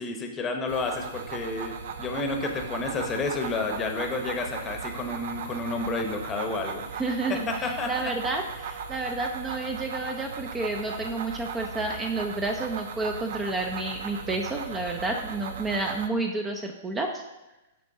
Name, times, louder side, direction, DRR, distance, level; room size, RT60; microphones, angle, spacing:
voice 1, 0.0-6.9 7.3-8.1, left 3 dB, 20° left, 4 dB, 0.8 m, -30 dB
sound 1, 0.7-16.1, right 6 dB, 65° right, 0.5 m, -37 dB
voice 2, 6.9-17.2, right 2 dB, 15° right, 4 dB, 0.5 m, -30 dB
8.3 x 5.2 x 2.7 m, 1.0 s
hypercardioid pair, 135°, 0 cm